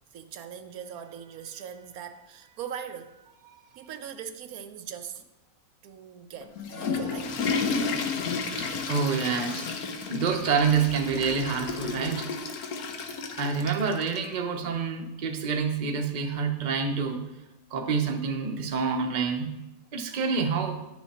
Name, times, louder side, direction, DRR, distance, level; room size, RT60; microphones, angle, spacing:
voice 1, 0.1-5.2 5.8-7.3, right 8 dB, 80° right, 1.1 m, -41 dB
Water / Toilet flush, 6.4-14.2, left 4 dB, 80° left, 1.3 m, -32 dB
voice 2, 8.6-9.7 10.1-12.3 13.4-17.3 17.7-19.6 19.9-20.8, right 5 dB, 40° right, 0.8 m, -27 dB
10.5 x 6.2 x 4.2 m
omnidirectional pair, 1.6 m